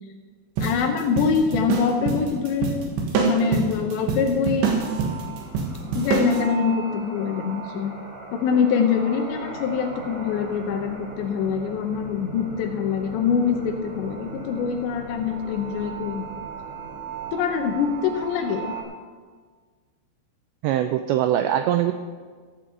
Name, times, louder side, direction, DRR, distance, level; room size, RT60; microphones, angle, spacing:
voice 1, 0.6-2.8 3.2-4.8 5.9-7.9 8.3-16.2 17.3-18.7, left 6 dB, 80° left, 4 dB, 2.8 m, -24 dB
sound 1, 0.6-6.4, right 5 dB, 70° right, 3.6 m, -25 dB
sound 2, 4.8-18.8, right 4 dB, 40° right, 3.1 m, -38 dB
voice 2, 20.6-21.9, right 11 dB, 90° right, 8 dB, 2.5 m, -22 dB
15.0 x 6.2 x 7.8 m, 1.6 s
omnidirectional pair, 5.6 m